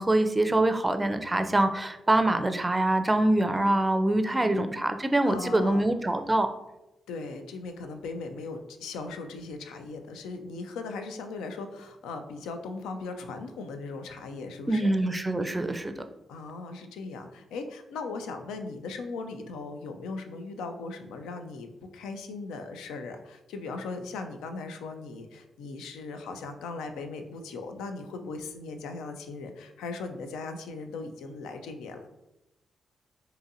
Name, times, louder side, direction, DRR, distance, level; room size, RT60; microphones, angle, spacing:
voice 1, 0.0-6.5 14.7-15.9, right 1 dB, 20° right, 8 dB, 0.4 m, -24 dB
voice 2, 4.2-4.7 5.3-5.9 7.1-15.0 16.3-32.1, left 3 dB, 85° left, 7 dB, 0.3 m, -38 dB
3.9 x 2.7 x 2.6 m, 0.95 s
supercardioid pair, 45°, 0 cm